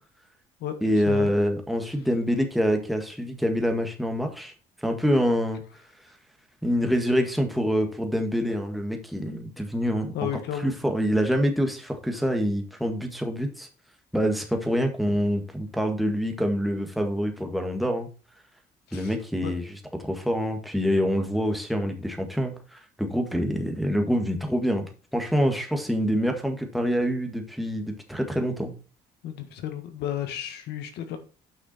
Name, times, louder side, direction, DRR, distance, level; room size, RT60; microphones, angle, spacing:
voice 1, 0.8-4.5 4.8-5.6 6.6-10.1 10.6-13.7 14.1-18.1 18.9-28.7, equal, ahead, 1.8 m, -26 dB
voice 2, 10.1-10.7 18.9-19.1 19.4-19.5 29.2-31.2, left 10 dB, 80° left, 1.6 m, -32 dB
9.0 x 5.8 x 4.3 m
cardioid pair, 110°, 17 cm